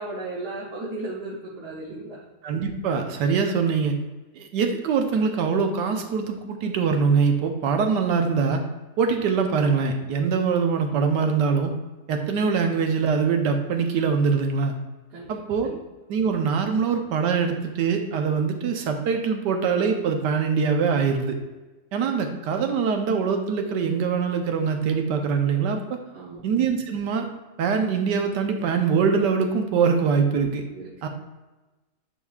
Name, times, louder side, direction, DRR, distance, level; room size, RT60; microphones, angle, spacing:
voice 1, 0.0-2.3 15.1-15.4 15.7-15.8 26.1-26.4 30.7-30.9, right 2 dB, 70° right, -5 dB, 1.7 m, -35 dB
voice 2, 2.4-3.9 4.3-8.6 9.0-11.7 12.1-14.7 15.3-15.7 16.1-21.4 21.9-26.0 26.4-27.3 27.6-30.6 31.0-31.1, right 5 dB, 85° right, 5 dB, 1.4 m, -23 dB
10.0 x 4.0 x 2.4 m, 1.1 s
omnidirectional pair, 1.8 m